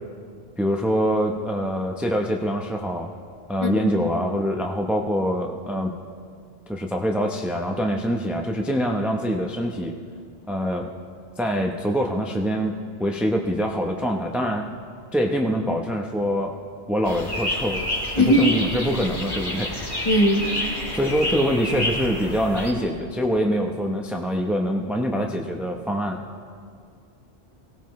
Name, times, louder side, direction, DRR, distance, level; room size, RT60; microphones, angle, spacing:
voice 1, 0.6-3.1 3.5-5.9 6.7-10.0 10.5-10.9 11.4-14.7 15.1-16.6 16.9-17.8 18.1-19.7 20.9-26.2, equal, ahead, 1 dB, 0.7 m, -24 dB
voice 2, 3.6-3.9 18.2-18.5 20.0-20.5, equal, 25° left, 2 dB, 1.2 m, -19 dB
sound 1, 17.0-22.7, left 1 dB, 70° left, 3.1 m, -29 dB
23.5 x 18.0 x 3.2 m, 2.2 s
omnidirectional pair, 1.2 m